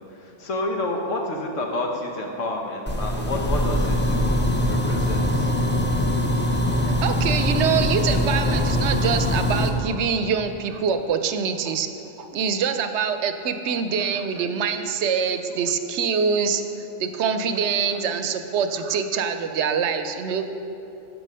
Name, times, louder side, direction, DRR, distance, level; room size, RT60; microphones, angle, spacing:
voice 1, 0.0-5.5, left 2 dB, 85° left, 1 dB, 1.4 m, -29 dB
sound 1, 2.9-9.7, equal, 10° left, 0.6 m, -22 dB
voice 2, 6.9-11.9 12.2-16.6 17.0-20.4, right 6 dB, 70° right, 8 dB, 0.8 m, -24 dB
12.5 x 4.5 x 5.5 m, 2.9 s
omnidirectional pair, 1.2 m